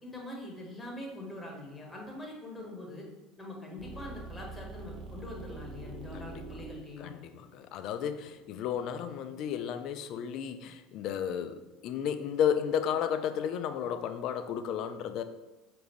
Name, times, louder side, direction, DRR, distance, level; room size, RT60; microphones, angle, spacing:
voice 1, 0.0-3.1 3.4-7.1, left 1 dB, 10° left, -1 dB, 1.2 m, -43 dB
sound 1, 3.8-8.9, right 3 dB, 40° right, 0.9 m, -45 dB
voice 2, 7.0-15.2, left 8 dB, 55° left, 10 dB, 0.3 m, -33 dB
4.9 x 2.6 x 3.0 m, 1.2 s
hypercardioid pair, 75°, 0 cm